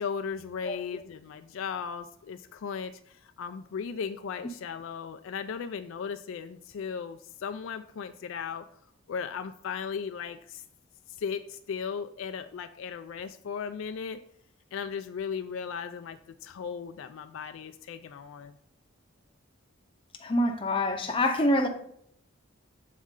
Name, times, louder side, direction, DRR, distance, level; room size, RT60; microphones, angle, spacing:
voice 1, 0.0-8.6 9.1-10.6 11.1-14.2 14.7-18.5, left 6 dB, 65° left, 0.3 m, -36 dB
voice 2, 20.2-21.7, left 1 dB, 25° left, 0.6 m, -25 dB
7.2 x 4.2 x 3.7 m
head